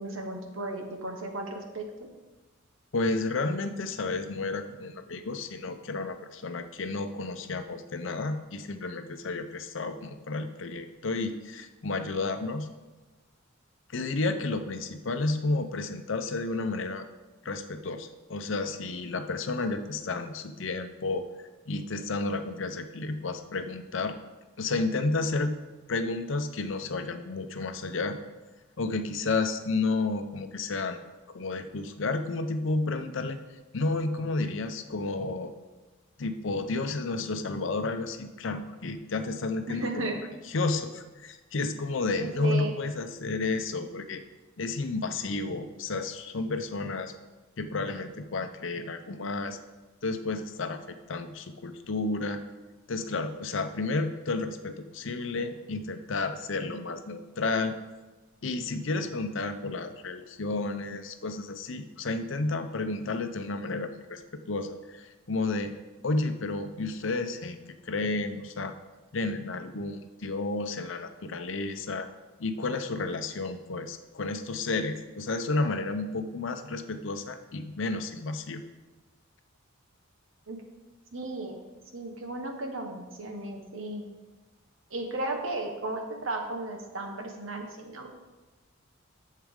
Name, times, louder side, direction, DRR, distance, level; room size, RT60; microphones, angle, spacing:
voice 1, 0.0-2.1 39.7-40.2 42.2-42.7 80.5-80.6 81.1-81.6 81.9-84.0 84.9-88.1, right 2 dB, 70° right, 3 dB, 1.2 m, -35 dB
voice 2, 2.9-12.7 13.9-17.1 17.4-21.3 21.7-24.1 24.6-25.6 25.9-28.2 28.8-31.0 31.3-33.4 33.7-35.5 36.2-40.1 40.5-44.2 44.6-47.1 47.6-49.6 50.0-52.4 52.9-57.7 58.4-64.2 64.5-65.7 66.0-67.6 67.8-68.7 69.1-72.1 72.4-78.6, left 3 dB, 65° left, 8 dB, 0.7 m, -31 dB
10.5 x 7.4 x 3.7 m, 1.2 s
head